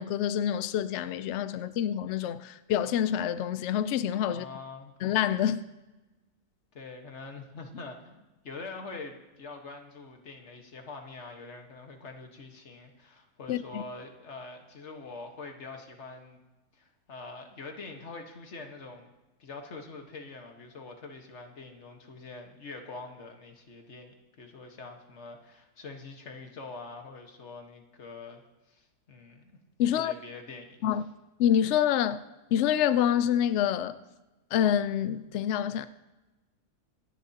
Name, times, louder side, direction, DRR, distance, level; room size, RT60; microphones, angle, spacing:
voice 1, 0.0-4.4 5.0-5.6 13.5-13.8 29.8-30.1 30.8-31.0 31.4-32.2 32.5-34.0 34.5-35.9, left 10 dB, 80° left, 0.6 m, -27 dB
voice 2, 4.3-4.9 6.7-16.4 16.8-19.1 19.4-28.4 28.7-29.5 29.8-30.9, left 3 dB, 45° left, 1.6 m, -44 dB
26.0 x 10.0 x 2.9 m
omnidirectional pair, 1.7 m